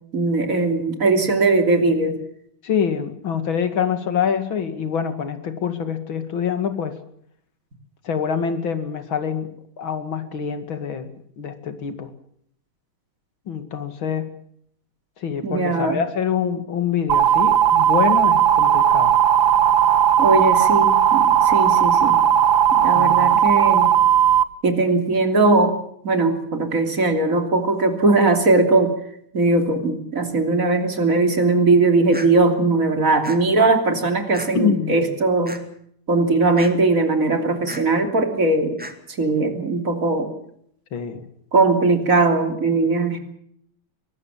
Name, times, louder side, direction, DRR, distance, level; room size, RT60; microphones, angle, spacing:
voice 1, 0.1-2.2 15.4-16.0 20.2-22.2 22.7-23.9 24.6-28.9 29.3-35.6 36.1-38.8 39.2-40.3 41.5-43.2, right 3 dB, 40° right, 5 dB, 3.4 m, -19 dB
voice 2, 2.6-7.0 8.0-9.5 9.8-11.1 11.4-12.1 13.5-14.3 15.2-19.1 22.9-23.4 34.5-34.9 40.9-41.2, left 7 dB, 70° left, 9 dB, 3.0 m, -25 dB
sound 1, 17.1-24.4, right 10 dB, 70° right, 1.8 m, -16 dB
sound 2, 32.1-32.3 33.2-33.4 34.3-34.5 35.5-35.6 36.6-36.7 37.7-37.8 38.8-38.9, right 1 dB, 5° right, 2.0 m, -34 dB
23.0 x 19.0 x 7.3 m, 0.67 s
omnidirectional pair, 2.3 m